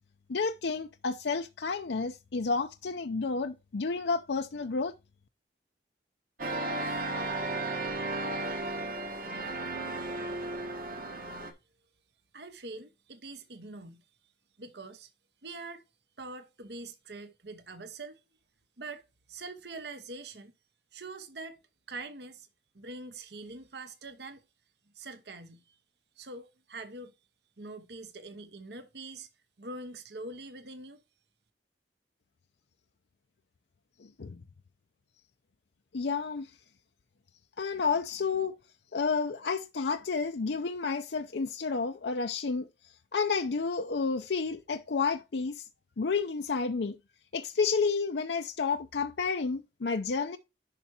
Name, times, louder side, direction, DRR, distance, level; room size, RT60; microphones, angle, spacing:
voice 1, 0.3-4.9 34.0-34.4 35.9-36.6 37.6-38.6 38.9-45.7 46.0-47.0 47.3-50.4, left 4 dB, 70° left, 0.6 m, -31 dB
sound 1, 6.4-11.5, right 2 dB, 50° right, 1.3 m, -34 dB
voice 2, 12.3-14.0 14.6-15.1 15.4-15.8 16.2-18.2 18.8-19.0 19.3-20.5 20.9-21.6 21.9-22.5 22.7-24.4 24.9-25.8 26.2-27.1 27.6-29.3 29.6-31.0, right 3 dB, 65° right, 1.1 m, -44 dB
11.0 x 4.6 x 2.8 m
head